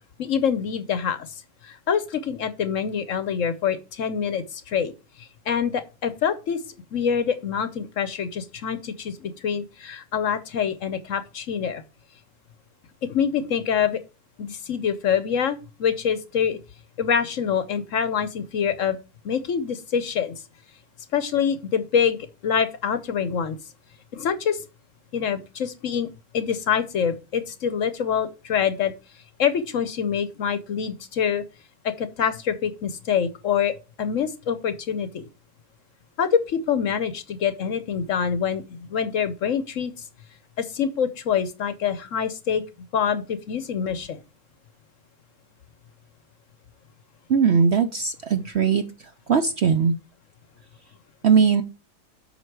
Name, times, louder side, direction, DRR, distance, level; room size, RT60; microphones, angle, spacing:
voice 1, 0.2-1.3 1.6-4.9 5.2-6.6 6.9-11.8 13.0-14.0 14.4-16.6 17.0-19.0 19.2-20.4 21.1-23.6 24.1-24.6 25.1-26.1 26.3-28.9 29.4-31.4 31.8-35.2 36.2-39.9 40.6-42.6 42.9-44.2, left 7 dB, 60° left, 12 dB, 1.0 m, -25 dB
voice 2, 47.3-48.8 49.3-49.9 51.2-51.6, right 6 dB, 60° right, 8 dB, 0.7 m, -19 dB
8.1 x 5.7 x 4.6 m, 0.30 s
omnidirectional pair, 1.7 m